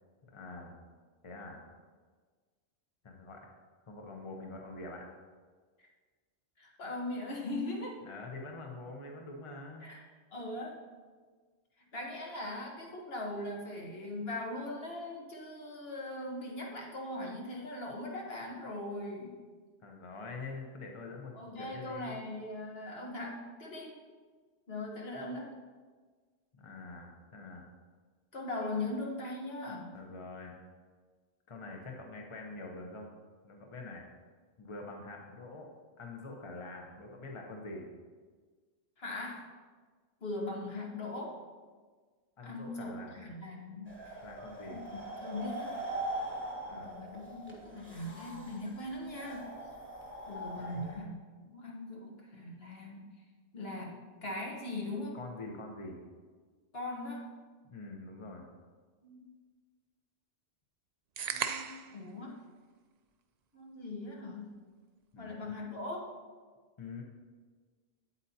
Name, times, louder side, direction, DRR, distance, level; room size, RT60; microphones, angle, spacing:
voice 1, 0.3-0.8 1.2-1.6 3.0-3.5 3.9-5.1 8.0-9.9 19.8-22.2 26.6-27.6 29.9-30.6 31.5-33.1 33.4-34.0 34.6-35.7 36.0-37.9 42.4-43.2 44.2-44.8 46.7-46.9 50.6-50.9 55.1-56.0 57.6-58.4 65.1-65.5 66.8-67.0, left 3 dB, 30° left, 1 dB, 0.8 m, -45 dB
voice 2, 6.6-8.0 9.8-10.0 10.3-10.8 11.9-19.4 21.3-24.0 24.7-25.5 28.3-30.0 39.0-39.5 40.2-41.4 42.4-44.2 44.7-44.8 45.2-45.8 46.7-49.5 50.3-51.1 51.4-53.1 53.5-55.2 56.7-57.3 59.0-59.3 61.3-62.4 63.5-64.5 65.2-66.1, left 2 dB, 60° left, -1 dB, 1.5 m, -40 dB
sound 1, 43.9-51.0, right 1 dB, 10° left, 1.3 m, -41 dB
sound 2, 61.2-62.0, right 7 dB, 60° right, 0.4 m, -35 dB
8.8 x 8.0 x 2.8 m, 1.5 s
omnidirectional pair, 1.2 m